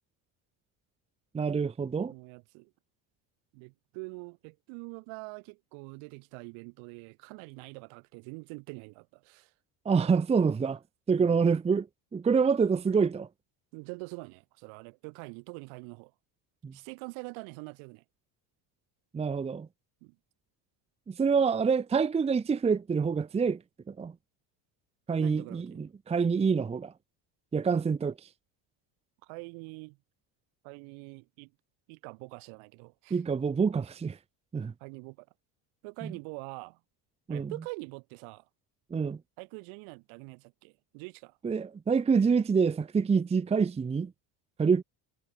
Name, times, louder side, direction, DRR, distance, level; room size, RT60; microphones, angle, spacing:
voice 1, 1.3-2.1 9.8-10.8 11.1-11.9 12.1-13.3 16.6-16.7 19.1-19.7 21.1-23.6 23.9-24.1 25.1-26.9 27.5-28.1 33.1-34.2 34.5-34.7 36.0-36.1 37.3-37.5 38.9-39.2 41.4-44.1 44.6-44.8, right 5 dB, 15° right, 0.9 m, -26 dB
voice 2, 2.1-2.7 3.5-9.5 11.2-11.4 13.7-16.1 16.7-18.0 20.0-20.2 25.2-25.8 29.2-30.0 30.6-31.5 31.9-33.2 34.8-35.3 35.8-36.8 37.3-38.4 39.4-41.4, right 32 dB, 75° right, 7.3 m, -44 dB
cardioid pair, 170°, 48 cm